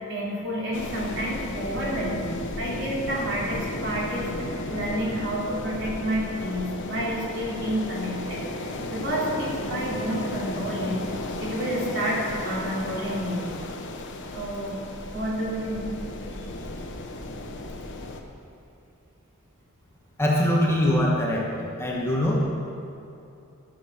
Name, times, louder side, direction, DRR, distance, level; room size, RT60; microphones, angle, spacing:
voice 1, 0.1-11.0 11.4-13.5 14.3-14.8 15.1-15.9 16.3-16.5, equal, 60° right, -5 dB, 3.2 m, -30 dB
sound 1, 0.7-18.2, left 2 dB, 60° left, 1.0 m, -34 dB
voice 2, 20.2-21.5 21.8-22.4, left 1 dB, 10° left, -4 dB, 1.5 m, -22 dB
13.0 x 7.1 x 6.5 m, 2.8 s
head